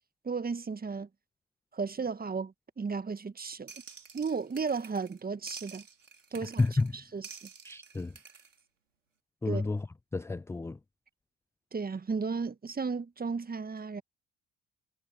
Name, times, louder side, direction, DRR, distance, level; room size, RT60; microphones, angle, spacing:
voice 1, 0.2-1.1 1.7-3.7 4.1-5.8 6.3-6.6 7.1-7.4 9.5-9.6 11.7-14.0, right 5 dB, 25° right, 1.7 m, -34 dB
sound 1, 3.7-5.2 5.5-6.9 7.2-8.6, right 5 dB, 90° right, 3.6 m, -50 dB
voice 2, 6.6-7.1 7.6-8.2 9.4-9.9 10.1-10.8, left 3 dB, 5° left, 0.4 m, -30 dB
figure-of-eight pair, 50°, 37 cm